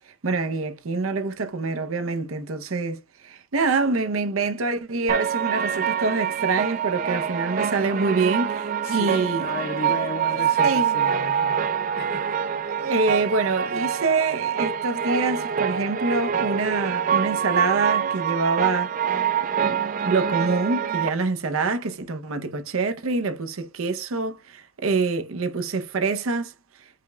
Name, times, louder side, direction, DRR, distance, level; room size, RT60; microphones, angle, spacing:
voice 1, 0.2-9.5 10.6-11.0 12.8-19.2 19.6-19.8 20.0-26.5, right 3 dB, 80° right, 0.6 m, -26 dB
sound 1, 5.1-21.1, right 8 dB, 40° right, 0.4 m, -25 dB
voice 2, 8.8-12.8, left 3 dB, 50° left, 0.7 m, -35 dB
5.0 x 2.2 x 3.8 m
head